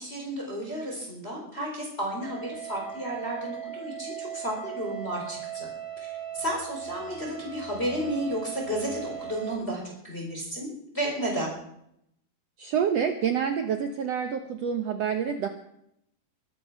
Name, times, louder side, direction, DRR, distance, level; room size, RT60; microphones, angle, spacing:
voice 1, 0.0-5.7 6.0-11.5, right 1 dB, 15° left, -1 dB, 4.2 m, -32 dB
sound 1, 2.2-9.5, right 10 dB, 50° right, 7.0 m, -38 dB
voice 2, 12.6-15.5, right 7 dB, 80° right, 5 dB, 1.4 m, -27 dB
23.5 x 8.5 x 6.1 m, 0.74 s
omnidirectional pair, 4.4 m